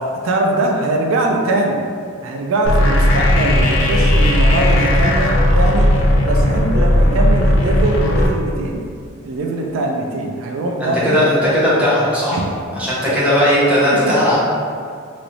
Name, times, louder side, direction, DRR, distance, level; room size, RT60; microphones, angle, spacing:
voice 1, 0.0-1.9 2.2-5.9 6.2-8.9 9.2-11.2 12.3-12.5 13.1-13.2 13.9-14.2, right 2 dB, 75° right, 1 dB, 0.3 m, -21 dB
sound 1, 2.6-8.3, left 1 dB, 65° left, 0.4 m, -15 dB
voice 2, 10.8-12.4 12.7-14.4, equal, 5° right, -9 dB, 0.6 m, -16 dB
3.0 x 3.0 x 2.5 m, 2.2 s
head